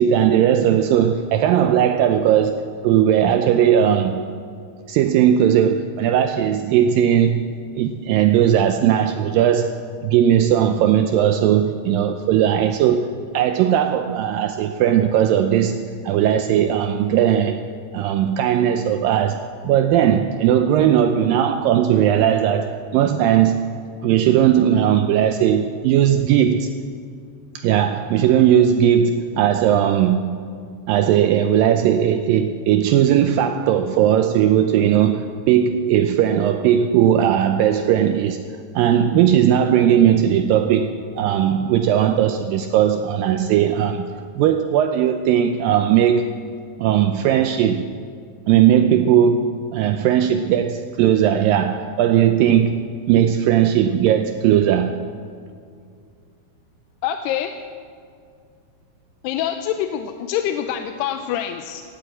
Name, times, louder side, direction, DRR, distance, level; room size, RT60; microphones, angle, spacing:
voice 1, 0.0-4.2 4.9-7.5 7.8-15.8 16.0-17.6 17.9-23.6 24.0-26.7 27.6-30.3 30.9-38.4 38.8-46.3 46.8-47.9 48.5-52.8 53.1-55.0, right 10 dB, 85° right, 2.0 m, -18 dB
voice 2, 57.0-57.5 59.2-61.8, left 10 dB, 90° left, 2.7 m, -25 dB
17.5 x 8.5 x 8.0 m
omnidirectional pair, 4.7 m